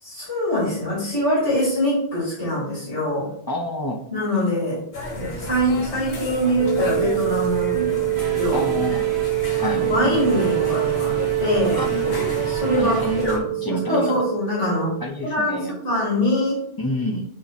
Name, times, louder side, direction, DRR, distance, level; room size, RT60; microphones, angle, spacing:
voice 1, 0.0-3.3 4.1-4.8 5.2-8.7 9.6-11.8 12.4-15.0 15.2-16.6, left 1 dB, 90° left, -8 dB, 3.0 m, -24 dB
voice 2, 3.5-4.0 8.5-9.0 9.6-9.8 11.7-12.0 12.8-14.2 15.0-15.7 16.8-17.2, left 1 dB, 25° left, 1 dB, 0.7 m, -28 dB
sound 1, 4.9-13.4, left 1 dB, 60° left, 1.3 m, -32 dB
sound 2, 6.6-15.1, right 17 dB, 85° right, 1.0 m, -25 dB
sound 3, 8.1-13.3, right 4 dB, 70° right, 0.8 m, -35 dB
8.3 x 3.1 x 4.1 m, 0.69 s
omnidirectional pair, 1.2 m